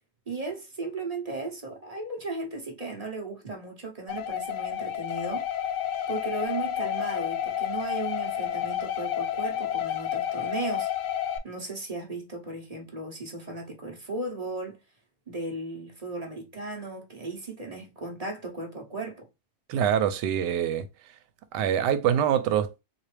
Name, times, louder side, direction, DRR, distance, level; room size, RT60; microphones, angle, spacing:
voice 1, 0.3-5.4 6.1-10.9 11.4-14.8 15.3-19.3, right 2 dB, 30° right, 0.7 m, -36 dB
sound 1, 4.1-11.4, left 10 dB, 90° left, 1.2 m, -30 dB
voice 2, 19.7-20.9 21.5-22.8, right 9 dB, 85° right, 1.2 m, -25 dB
4.0 x 2.6 x 3.3 m
omnidirectional pair, 1.8 m